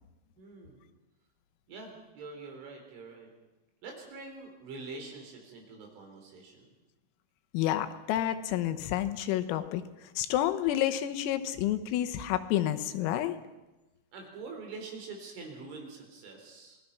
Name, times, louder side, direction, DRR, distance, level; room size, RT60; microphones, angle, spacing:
voice 1, 0.4-0.8 1.7-3.3 3.8-6.7 14.1-16.8, right 3 dB, 65° right, 2 dB, 6.4 m, -45 dB
voice 2, 7.5-13.4, left 12 dB, 90° left, 10 dB, 3.8 m, -30 dB
27.0 x 19.5 x 5.9 m, 1.1 s
omnidirectional pair, 6.0 m